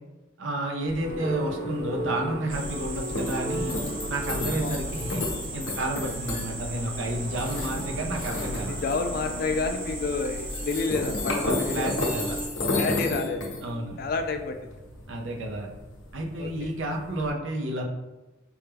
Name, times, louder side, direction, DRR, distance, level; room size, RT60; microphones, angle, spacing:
voice 1, 0.4-3.8 4.1-5.3 5.5-8.7 11.4-12.4 13.6-14.0 15.1-15.7 16.1-17.8, right 1 dB, 75° right, 1 dB, 0.6 m, -31 dB
sound 1, 0.9-17.3, left 2 dB, 65° left, 0.8 m, -34 dB
sound 2, 1.0-14.3, equal, 40° right, 1.4 m, -38 dB
sound 3, 2.5-12.5, right 1 dB, 25° right, 0.5 m, -36 dB
voice 2, 8.5-11.9 12.6-13.4 14.0-14.6 16.4-16.5, left 4 dB, 50° left, 6 dB, 0.3 m, -29 dB
4.6 x 2.2 x 3.3 m, 1.1 s
head